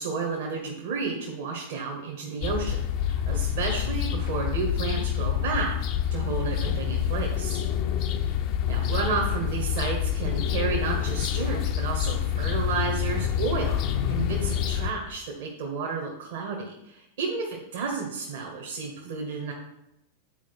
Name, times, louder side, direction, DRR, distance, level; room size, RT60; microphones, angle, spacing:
voice 1, 0.0-5.7 6.1-7.6 8.6-13.8 14.1-19.5, right 5 dB, 55° right, -1 dB, 1.4 m, -31 dB
sound 1, 2.4-14.9, left 9 dB, 40° left, 0.6 m, -27 dB
9.2 x 4.7 x 4.5 m, 0.86 s
figure-of-eight pair, 90°, 0 cm